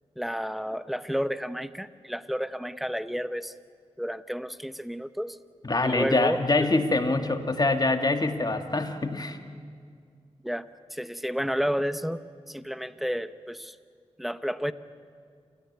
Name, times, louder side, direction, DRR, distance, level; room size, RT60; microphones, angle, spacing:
voice 1, 0.2-3.5 4.0-5.4 5.8-6.7 10.4-13.8 14.2-14.7, equal, ahead, 12 dB, 0.9 m, -31 dB
voice 2, 5.6-9.4, left 2 dB, 35° left, 6 dB, 1.9 m, -25 dB
28.5 x 14.0 x 9.5 m, 2.2 s
cardioid pair, 55°, 12 cm